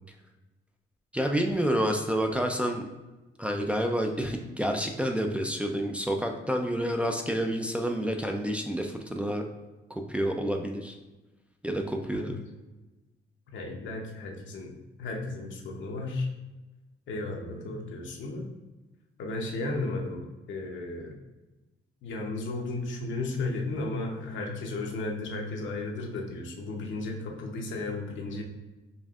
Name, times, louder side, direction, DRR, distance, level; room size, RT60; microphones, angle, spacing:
voice 1, 1.1-2.8 3.4-9.4 10.1-10.9 11.6-12.4, equal, 5° right, 2 dB, 0.4 m, -29 dB
voice 2, 13.5-14.7 15.0-16.3 17.1-18.5 19.2-20.2 20.5-21.1 22.0-28.4, left 2 dB, 70° left, 1 dB, 0.8 m, -34 dB
5.3 x 2.5 x 2.4 m, 1.1 s
cardioid pair, 90°, 20 cm